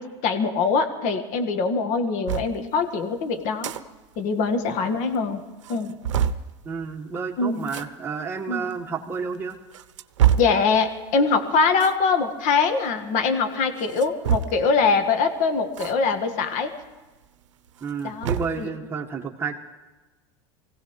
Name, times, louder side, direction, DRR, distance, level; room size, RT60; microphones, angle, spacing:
voice 1, 0.0-3.7 4.2-5.4 5.7-5.9 7.4-7.7 8.5-8.6 10.4-16.7 18.0-18.3 18.6-18.7, left 4 dB, 55° left, 8 dB, 1.7 m, -23 dB
sound 1, 2.3-2.5 3.4-3.8 4.1-4.2 4.5-4.6 5.1-5.2 5.6-6.5 7.6-7.9 8.7-8.8 9.5-10.6 11.7-12.0 13.8-14.7 15.7-15.9 16.3-16.4 17.7-18.6, right 9 dB, 80° right, 0.7 m, -25 dB
voice 2, 6.6-9.6 17.8-19.5, right 5 dB, 15° right, -2 dB, 1.5 m, -30 dB
24.5 x 16.0 x 3.2 m, 1.2 s
hypercardioid pair, 90°, 15 cm